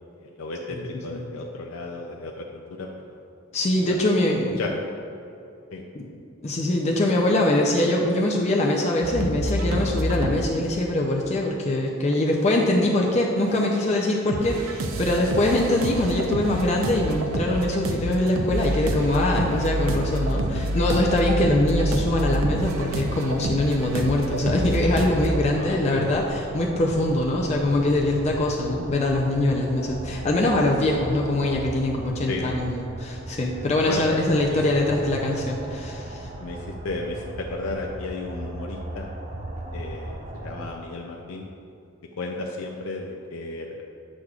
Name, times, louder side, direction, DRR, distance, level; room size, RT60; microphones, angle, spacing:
voice 1, 0.2-2.9 3.9-4.7 5.7-5.9 20.3-20.6 25.6-26.2 32.3-32.5 33.9-34.6 36.4-39.1 39.7-41.5 42.2-43.8, left 3 dB, 90° left, 1 dB, 0.4 m, -34 dB
voice 2, 0.8-1.2 3.5-4.6 5.9-6.1 6.4-26.2 26.5-36.3, left 1 dB, 35° left, -1 dB, 0.5 m, -23 dB
sound 1, 9.0-10.4 11.1-11.4 12.1-13.1 13.4-25.4, right 1 dB, 90° right, 0.6 m, -28 dB
sound 2, 20.8-40.7, right 1 dB, 35° right, 0.5 m, -37 dB
8.0 x 6.2 x 2.4 m, 2.6 s
head